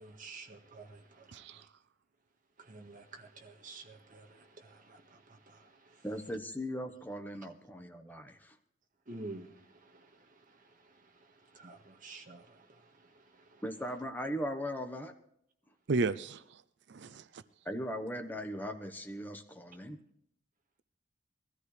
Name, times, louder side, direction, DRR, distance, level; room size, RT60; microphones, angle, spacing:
voice 1, 0.0-1.7 2.6-6.0 9.1-13.6, right 3 dB, 45° right, 1.6 m, -51 dB
voice 2, 1.3-1.6 15.9-16.6 16.9-17.4, right 3 dB, 65° right, 0.5 m, -34 dB
voice 3, 6.0-8.6 13.6-15.2 17.6-20.0, equal, 10° left, 1.1 m, -39 dB
21.0 x 13.5 x 3.3 m
head